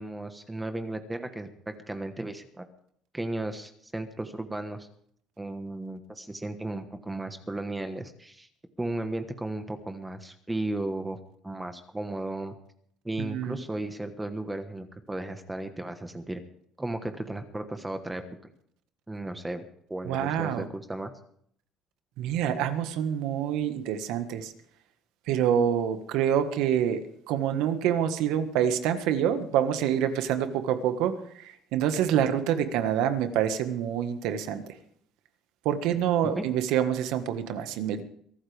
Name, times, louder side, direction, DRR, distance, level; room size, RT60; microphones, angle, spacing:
voice 1, 0.0-2.6 3.1-4.9 5.4-8.5 8.8-11.2 11.4-12.5 13.0-16.4 16.8-18.5 19.1-21.1 36.2-36.4, right 2 dB, 10° right, 8 dB, 1.3 m, -35 dB
voice 2, 13.2-13.6 20.0-20.6 22.2-24.5 25.3-34.6 35.6-38.0, right 9 dB, 80° right, 9 dB, 1.5 m, -27 dB
23.0 x 13.0 x 3.5 m, 0.66 s
cardioid pair, 135°, 0 cm